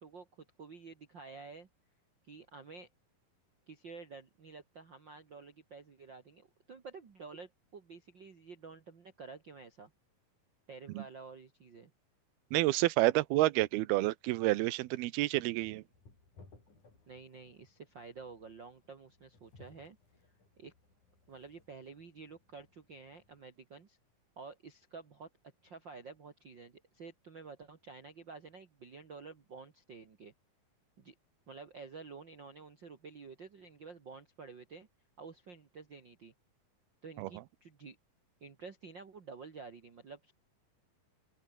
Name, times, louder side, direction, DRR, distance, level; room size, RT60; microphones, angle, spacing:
voice 1, 0.0-1.7 2.3-2.9 3.7-9.9 10.7-11.9 17.1-20.0 20.2-20.7 21.3-24.0 24.4-25.3 25.6-30.3 31.0-31.1 31.5-34.9 35.2-36.3 37.0-38.0 38.4-40.3, right 4 dB, 40° right, 2.0 m, -50 dB
voice 2, 12.5-15.8 37.2-37.3, right 18 dB, 85° right, 2.8 m, -29 dB
sound 1, 15.6-23.4, left 3 dB, 55° left, 8.9 m, -63 dB
omnidirectional pair, 4.3 m